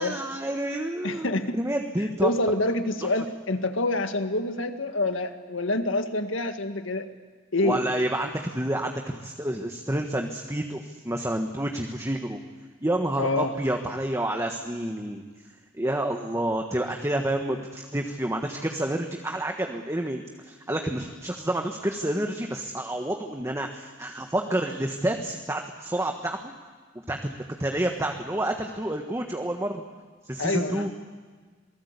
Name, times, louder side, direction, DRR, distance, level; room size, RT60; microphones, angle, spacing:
voice 1, 0.0-2.3 7.6-12.4 12.8-15.2 15.8-26.5 27.1-29.8 30.2-30.9, right 1 dB, 15° right, 3 dB, 1.4 m, -29 dB
voice 2, 1.0-1.6 2.2-7.1 7.5-7.8 13.2-13.5 30.4-30.9, left 2 dB, 80° left, 7 dB, 1.8 m, -26 dB
27.0 x 19.0 x 8.3 m, 1.5 s
head